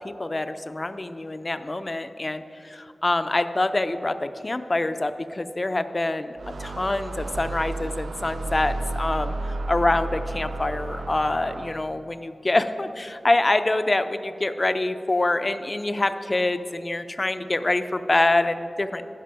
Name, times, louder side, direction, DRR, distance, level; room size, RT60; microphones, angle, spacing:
voice 1, 0.2-19.1, left 2 dB, 30° left, 10 dB, 0.4 m, -25 dB
sound 1, 6.4-12.1, right 2 dB, 80° right, 0.3 m, -32 dB
10.5 x 5.4 x 5.6 m, 2.6 s
wide cardioid pair, 105°, 0 cm